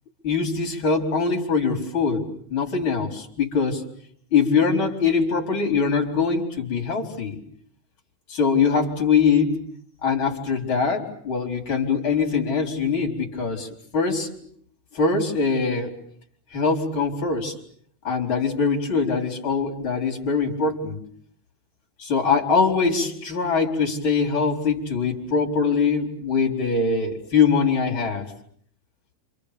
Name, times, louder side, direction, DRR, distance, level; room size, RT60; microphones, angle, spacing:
voice 1, 0.2-2.2 2.5-3.8 4.3-7.4 8.3-9.6 10.0-14.3 14.9-15.9 16.5-17.5 18.0-21.0 22.0-28.3, left 5 dB, 25° left, 2 dB, 4.6 m, -22 dB
28.5 x 28.0 x 6.9 m, 0.62 s
omnidirectional pair, 5.4 m